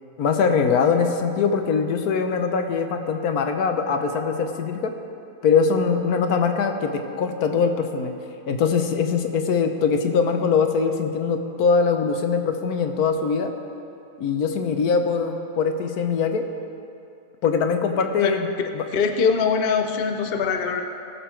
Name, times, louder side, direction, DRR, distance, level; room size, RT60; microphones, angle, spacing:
voice 1, 0.2-4.9 5.4-8.1 8.5-13.5 14.2-16.5 17.4-18.5 18.7-18.8, left 5 dB, 85° left, 6 dB, 1.4 m, -22 dB
voice 2, 18.9-20.8, left 5 dB, 50° left, 5 dB, 0.8 m, -22 dB
18.5 x 6.9 x 4.5 m, 2.7 s
omnidirectional pair, 1.5 m